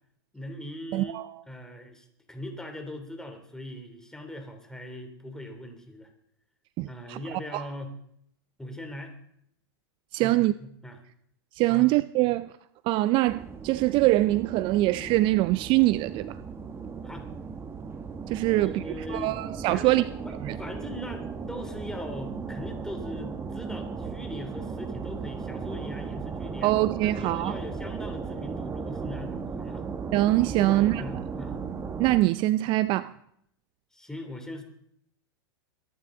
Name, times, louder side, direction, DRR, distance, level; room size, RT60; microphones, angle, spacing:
voice 1, 0.3-1.2 1.5-6.1 6.9-7.9 8.6-9.1 10.2-11.0 11.7-11.9 17.0-17.3 18.5-19.4 19.7-26.7 27.0-29.8 30.6-31.6 33.9-34.6, left 1 dB, 5° left, 5 dB, 2.9 m, -40 dB
voice 2, 0.9-1.3 6.8-7.2 7.5-7.6 10.1-10.5 11.5-12.5 12.8-16.4 18.3-18.8 19.1-20.0 20.4-20.6 26.6-27.6 30.1-31.0 32.0-33.1, right 17 dB, 40° right, 16 dB, 0.5 m, -23 dB
sound 1, 13.3-32.2, right 5 dB, 20° right, 1.2 m, -36 dB
23.0 x 10.5 x 3.8 m, 0.71 s
hypercardioid pair, 110°, 13 cm